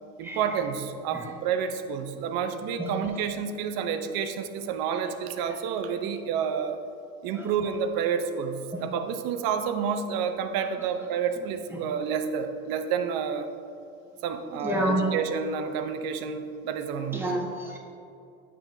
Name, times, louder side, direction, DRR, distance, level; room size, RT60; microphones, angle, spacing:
voice 1, 0.2-6.8 7.2-13.5 14.2-17.3, right 7 dB, 55° right, 7 dB, 0.8 m, -29 dB
voice 2, 14.6-15.1 17.1-17.8, equal, 5° right, -2 dB, 1.5 m, -28 dB
7.8 x 7.6 x 2.7 m, 2.6 s
hypercardioid pair, 75°, 42 cm